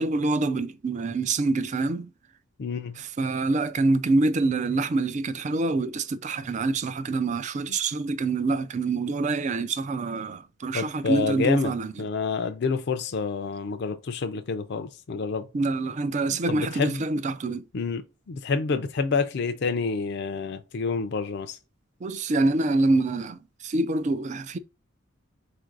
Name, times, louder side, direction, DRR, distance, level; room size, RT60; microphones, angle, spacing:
voice 1, 0.0-2.1 3.0-11.9 15.5-17.6 22.0-24.6, right 3 dB, 35° right, 0.3 m, -26 dB
voice 2, 2.6-3.0 10.7-15.5 16.3-17.0 17.7-21.6, left 4 dB, 55° left, 0.4 m, -28 dB
4.5 x 2.5 x 4.5 m
head